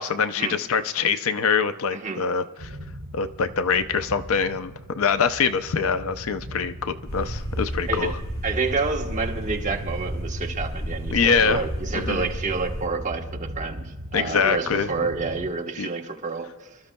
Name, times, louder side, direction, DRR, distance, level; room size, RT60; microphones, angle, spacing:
voice 1, 0.0-2.7 3.1-8.1 11.1-11.6 11.9-12.3 14.1-14.9 15.8-15.9, left 6 dB, 65° left, 0.5 m, -24 dB
voice 2, 1.9-2.3 7.9-8.2 8.4-16.8, right 4 dB, 35° right, 1.1 m, -29 dB
sound 1, 2.6-15.5, equal, 50° right, 3.0 m, -40 dB
sound 2, 7.1-12.9, equal, 85° left, 2.8 m, -32 dB
27.0 x 13.0 x 2.2 m
head